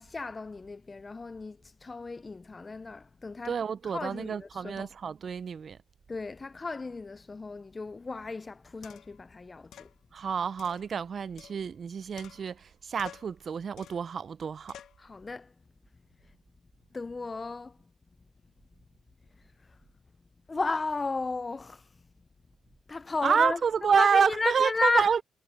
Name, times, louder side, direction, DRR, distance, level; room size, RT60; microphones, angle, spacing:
voice 1, 0.0-4.9 6.1-9.9 15.0-15.5 16.9-17.8 20.5-21.8 22.9-25.1, left 3 dB, 25° left, 0.5 m, -34 dB
voice 2, 3.4-5.8 10.1-14.7 23.2-25.2, right 6 dB, 45° right, 0.5 m, -28 dB
sound 1, 8.1-8.2 8.8-9.2 9.7-9.9 10.6-11.9 12.2-12.7 13.0-13.4 13.8-14.1 14.7-15.0, left 10 dB, 70° left, 0.8 m, -51 dB
cardioid pair, 90°, 0 cm